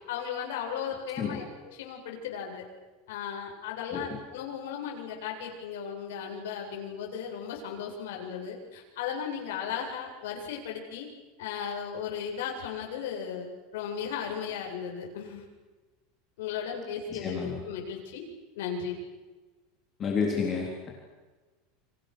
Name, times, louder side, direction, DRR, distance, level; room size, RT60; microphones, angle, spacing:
voice 1, 0.1-1.4 1.7-2.6 3.1-11.1 11.4-13.5 13.7-15.5 16.4-18.2 18.5-19.0, left 7 dB, 75° left, 0 dB, 7.9 m, -36 dB
voice 2, 17.1-17.6 20.0-20.9, left 5 dB, 20° left, -1 dB, 3.9 m, -30 dB
30.0 x 26.5 x 6.6 m, 1.2 s
supercardioid pair, 180°, 0 cm